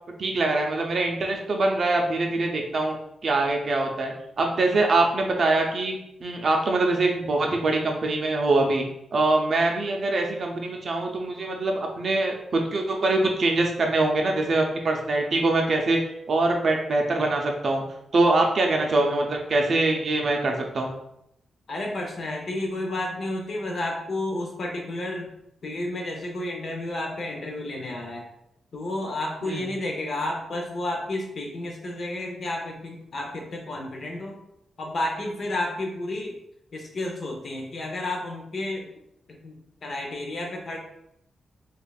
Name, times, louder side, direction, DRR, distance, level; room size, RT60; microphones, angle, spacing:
voice 1, 0.2-3.0 3.2-8.8 9.1-16.0 16.3-17.8 18.1-20.9 29.4-29.6, right 2 dB, 45° right, 2 dB, 0.5 m, -23 dB
voice 2, 21.7-25.3 25.6-28.3 28.7-34.4 34.8-36.3 36.7-38.9 39.3-40.8, left 1 dB, 50° left, 1 dB, 0.7 m, -31 dB
4.9 x 2.4 x 2.3 m, 0.79 s
wide cardioid pair, 140°, 0 cm